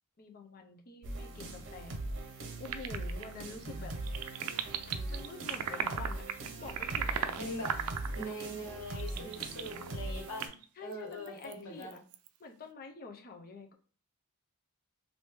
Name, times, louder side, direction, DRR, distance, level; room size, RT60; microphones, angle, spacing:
voice 1, 0.2-2.0 2.6-3.9 5.1-6.2 6.5-7.1 8.3-8.4 9.3-9.7 10.8-12.0 12.4-13.7, left 3 dB, 40° left, 3 dB, 0.6 m, -47 dB
sound 1, 1.0-10.5, right 2 dB, 60° right, 0.7 m, -41 dB
sound 2, 2.7-3.6 3.9-8.3 9.0-10.0 10.4-10.6 10.9-11.5 11.8-12.3, right 8 dB, 80° right, 0.4 m, -37 dB
voice 2, 7.4-7.7 8.2-10.5 10.8-12.0, equal, 60° left, -2 dB, 1.3 m, -42 dB
3.0 x 2.6 x 3.4 m, 0.40 s
head